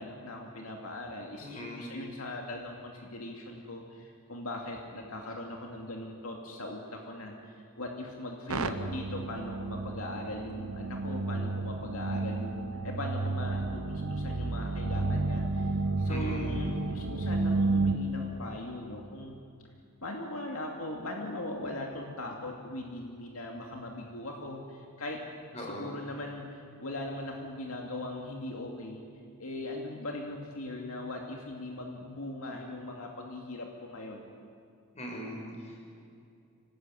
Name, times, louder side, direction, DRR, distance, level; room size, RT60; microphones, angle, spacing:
voice 1, 0.0-19.4 20.0-25.2 25.6-29.0 29.4-34.3, left 1 dB, 75° left, 1 dB, 2.5 m, -40 dB
voice 2, 1.4-1.9 16.1-16.7 25.5-26.0 34.9-35.8, equal, 30° left, 0 dB, 5.7 m, -40 dB
sound 1, 8.5-17.9, right 3 dB, 80° right, 1.1 m, -31 dB
26.0 x 18.5 x 9.3 m, 2.5 s
head